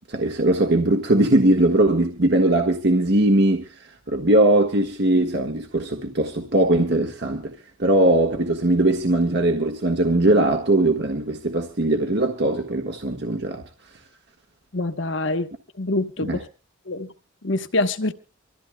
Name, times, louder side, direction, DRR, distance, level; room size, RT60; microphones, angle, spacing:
voice 1, 0.1-7.5 7.8-13.6 16.2-16.4, right 1 dB, 50° right, 1.5 m, -20 dB
voice 2, 14.7-15.5 15.8-16.4 16.9-17.1 17.4-18.1, left 2 dB, 60° left, 1.2 m, -25 dB
25.5 x 14.5 x 2.3 m
head